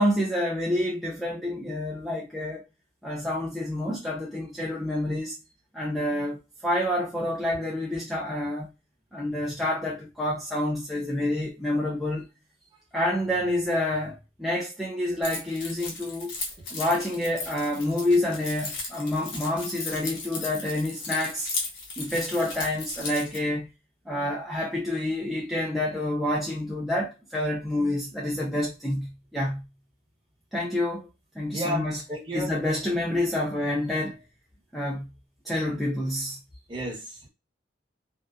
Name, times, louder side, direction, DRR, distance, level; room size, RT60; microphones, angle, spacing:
voice 1, 0.0-2.6 3.0-5.4 5.7-8.7 9.1-12.3 12.9-16.3 16.7-21.5 22.0-23.7 24.1-29.7 30.5-31.1 31.3-32.0 32.3-34.2 34.7-35.1 35.5-36.4, left 1 dB, ahead, 0.5 m, -28 dB
Keys jangling, 15.2-23.4, left 3 dB, 85° left, 1.0 m, -36 dB
voice 2, 31.5-32.5 36.7-37.0, equal, 25° right, 1.0 m, -31 dB
2.7 x 2.0 x 2.3 m
head